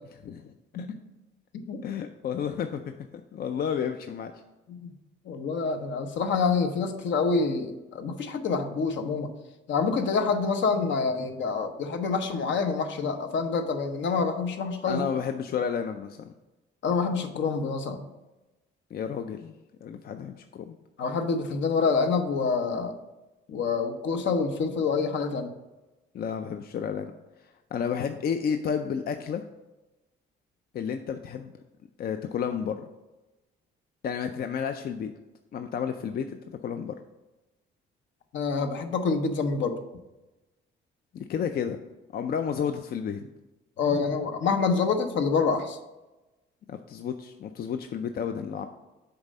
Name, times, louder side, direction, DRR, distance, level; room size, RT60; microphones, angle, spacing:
voice 1, 0.2-0.9 1.8-2.9 3.3-4.3 14.9-16.3 18.9-19.5 19.8-20.8 26.1-27.1 27.7-29.4 30.7-31.5 32.0-32.8 34.0-35.1 35.5-36.9 41.1-41.8 42.1-43.2 46.7-48.7, left 7 dB, 50° left, 7 dB, 0.4 m, -31 dB
voice 2, 5.2-9.3 9.7-15.1 16.8-18.0 21.0-23.0 23.5-25.5 38.3-39.8 43.8-45.8, left 4 dB, 70° left, 6 dB, 0.9 m, -27 dB
6.9 x 4.1 x 5.3 m, 1.1 s
cardioid pair, 90°, 20 cm